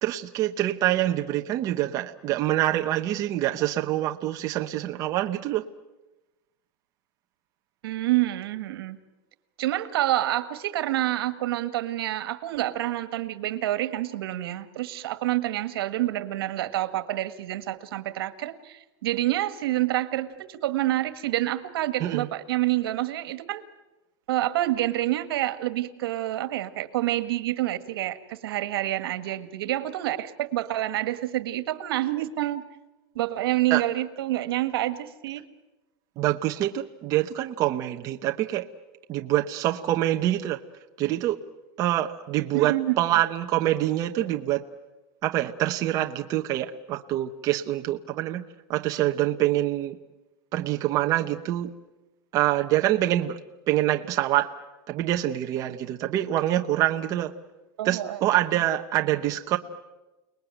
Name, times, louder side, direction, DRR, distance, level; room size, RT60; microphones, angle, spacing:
voice 1, 0.0-5.7 22.0-22.3 33.7-33.8 36.2-38.7 39.1-40.6 41.0-41.4 41.8-44.7 45.2-48.4 48.7-50.0 50.5-51.7 52.3-53.4 53.7-54.5 54.9-57.3 57.8-59.6, right 14 dB, 30° right, 5 dB, 0.9 m, -25 dB
voice 2, 7.8-9.0 9.6-23.6 24.3-32.6 33.1-35.4 42.5-42.9 57.8-58.2, right 15 dB, 85° right, 11 dB, 1.7 m, -27 dB
29.5 x 20.0 x 9.1 m, 1.1 s
supercardioid pair, 175°, 12 cm